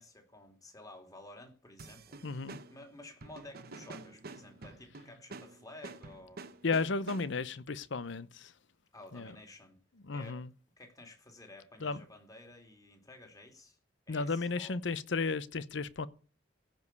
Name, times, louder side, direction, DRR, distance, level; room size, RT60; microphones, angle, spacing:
voice 1, 0.0-6.5 8.9-9.8 10.1-10.4 10.8-13.8 14.1-14.8, left 1 dB, 20° left, 2.8 m, -53 dB
sound 1, 1.8-7.6, right 3 dB, 55° right, 1.0 m, -49 dB
voice 2, 2.2-2.6 6.6-8.5 9.1-9.3 10.0-10.5 11.8-12.0 14.1-16.1, left 4 dB, 70° left, 0.8 m, -34 dB
16.0 x 5.3 x 8.2 m
head